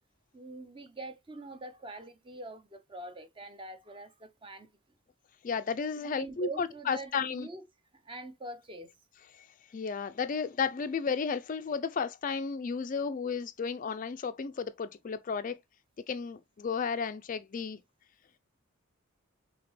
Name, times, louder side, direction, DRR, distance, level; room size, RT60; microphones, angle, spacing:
voice 1, 0.3-4.7 6.0-7.6 8.0-8.9, right 2 dB, 25° right, 0.6 m, -44 dB
voice 2, 5.4-7.5 9.3-9.5 9.7-15.6 16.1-17.8, left 5 dB, 35° left, 0.3 m, -33 dB
5.0 x 3.4 x 3.0 m
head